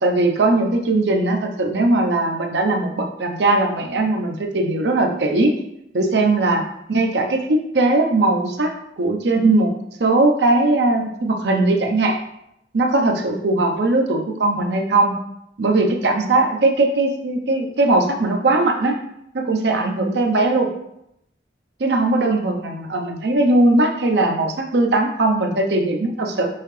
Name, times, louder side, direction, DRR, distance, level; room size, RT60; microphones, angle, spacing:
voice 1, 0.0-5.5 5.9-6.6 6.9-8.7 9.0-9.7 10.0-12.2 12.7-15.2 15.6-19.0 19.3-20.7 21.8-26.5, right 2 dB, 70° right, 3 dB, 0.7 m, -19 dB
5.6 x 2.8 x 3.2 m, 0.79 s
head